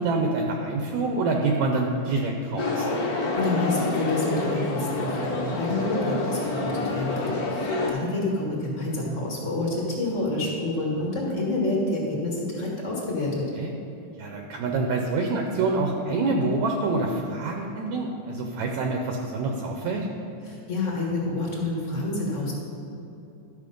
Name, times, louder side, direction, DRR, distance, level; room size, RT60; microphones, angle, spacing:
voice 1, 0.0-2.9 13.6-13.7 14.2-20.1, right 3 dB, 75° right, 2 dB, 1.9 m, -26 dB
sound 1, 2.6-7.9, left 2 dB, 70° left, 0.8 m, -27 dB
voice 2, 3.4-13.5 20.4-22.5, left 2 dB, 40° left, -3 dB, 1.0 m, -28 dB
12.0 x 6.4 x 5.3 m, 2.8 s
omnidirectional pair, 3.6 m